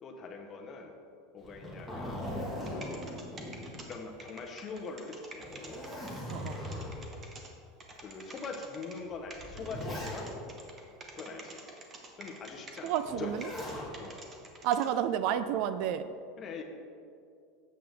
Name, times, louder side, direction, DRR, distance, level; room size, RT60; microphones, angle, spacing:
voice 1, 0.0-0.9 1.3-2.2 2.7-3.3 3.9-5.5 8.0-10.3 11.1-11.6 12.2-13.6 14.0-14.2 16.4-16.6, left 4 dB, 30° left, 3 dB, 0.9 m, -42 dB
Zipper (clothing), 1.4-4.3 4.7-4.8 5.3-7.2 7.9-8.0 9.0-10.6 13.0-13.9 15.3-15.8, left 1 dB, ahead, 1.7 m, -40 dB
sound 1, 2.6-7.5 7.8-9.0 9.3-13.1 13.4-14.9, right 3 dB, 20° right, 1.0 m, -48 dB
voice 2, 12.8-13.5 14.6-16.1, right 10 dB, 55° right, 12 dB, 0.3 m, -30 dB
8.5 x 7.7 x 3.5 m, 2.4 s
supercardioid pair, 150°, 0 cm